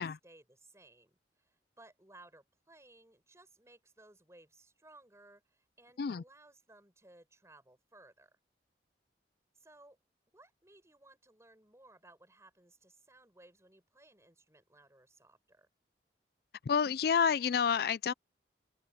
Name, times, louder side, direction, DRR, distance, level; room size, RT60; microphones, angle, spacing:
voice 1, 0.0-8.4 9.5-10.0 10.3-15.7, right 2 dB, 15° right, 5.8 m, -60 dB
voice 2, 16.7-18.1, left 7 dB, 60° left, 0.4 m, -29 dB
open air
head